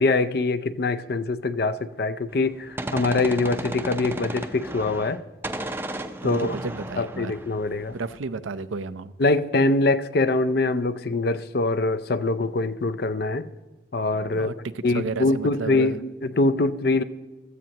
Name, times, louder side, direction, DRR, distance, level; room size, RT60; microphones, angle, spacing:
voice 1, 0.0-5.2 6.2-6.5 7.0-7.9 9.2-13.5 13.9-14.5 14.8-17.0, left 2 dB, 55° left, 14 dB, 0.5 m, -23 dB
Gunshot gunfire, 2.3-5.2 5.4-8.2, right 1 dB, 10° right, 0.5 m, -34 dB
voice 2, 6.2-7.3 7.9-9.1 14.3-16.0, right 3 dB, 90° right, 13 dB, 0.6 m, -32 dB
16.5 x 14.0 x 2.9 m, 1.2 s
head